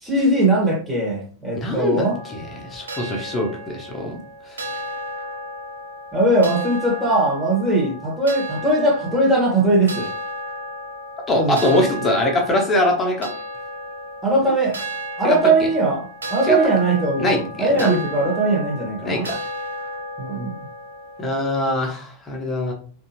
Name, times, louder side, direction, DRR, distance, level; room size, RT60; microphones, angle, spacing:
voice 1, 0.0-2.2 6.1-10.1 11.3-11.8 14.2-14.8 15.2-19.2 20.2-20.5, right 2 dB, 10° right, -2 dB, 1.3 m, -20 dB
voice 2, 1.6-4.2 11.3-13.3 15.2-15.4 16.5-16.6 17.2-18.0 19.0-19.4 21.2-22.7, left 1 dB, 20° left, 1 dB, 0.9 m, -22 dB
sound 1, 2.0-21.4, equal, 70° right, 0.6 m, -34 dB
3.5 x 2.6 x 2.8 m, 0.42 s
figure-of-eight pair, 90°, 0 cm